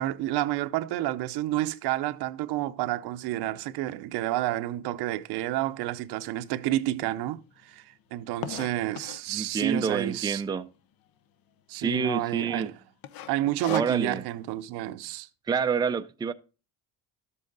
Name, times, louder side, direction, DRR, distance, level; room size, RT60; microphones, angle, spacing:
voice 1, 0.0-10.4 11.7-12.8 13.3-15.3, right 15 dB, 80° right, 0.8 m, -30 dB
sound 1, 5.9-6.0 6.6-6.7 6.9-7.0 7.2-9.4 10.0-10.4 10.8-10.9 11.1-11.2 11.7-12.1 12.4-12.6 13.0-14.3, left 10 dB, 60° left, 0.8 m, -39 dB
voice 2, 9.3-10.7 11.7-12.7 13.7-14.2 15.5-16.3, right 5 dB, 10° right, 0.4 m, -28 dB
12.5 x 7.8 x 3.9 m
cardioid pair, 130°, 39 cm